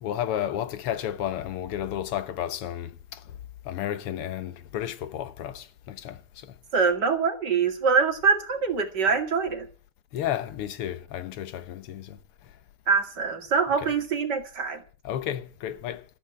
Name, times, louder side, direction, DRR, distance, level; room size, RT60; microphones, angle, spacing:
voice 1, 0.0-3.2 3.7-6.5 10.1-12.2 13.8-13.9 15.0-16.0, left 11 dB, 90° left, 2.0 m, -32 dB
voice 2, 6.7-9.7 12.9-14.8, right 5 dB, 50° right, 2.7 m, -24 dB
13.5 x 8.8 x 8.6 m
omnidirectional pair, 2.4 m